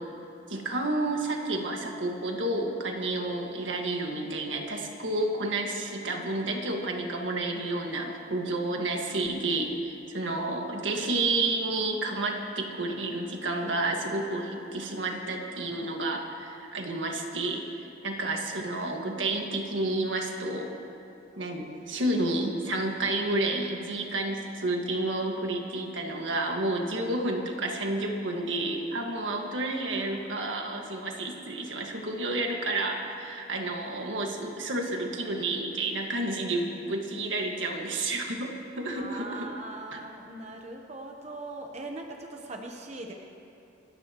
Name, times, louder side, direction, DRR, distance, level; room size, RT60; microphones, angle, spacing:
voice 1, 0.5-20.7 21.3-39.5 39.9-40.0, right 2 dB, 75° right, 2 dB, 1.7 m, -30 dB
voice 2, 38.9-43.1, right 2 dB, 35° right, 2 dB, 0.9 m, -40 dB
28.5 x 13.5 x 3.0 m, 2.8 s
head